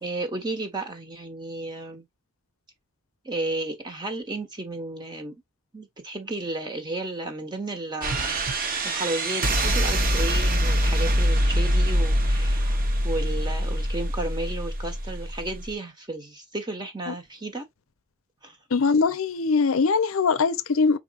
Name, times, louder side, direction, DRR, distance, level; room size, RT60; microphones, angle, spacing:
voice 1, 0.0-2.0 3.2-5.3 5.7-8.4 8.8-12.8 13.0-17.6 18.4-18.6, right 2 dB, 20° right, 1.2 m, -33 dB
sound 1, 8.0-15.7, equal, 40° right, 0.8 m, -24 dB
voice 2, 18.7-21.0, left 4 dB, 65° left, 0.6 m, -22 dB
5.2 x 4.2 x 2.4 m
head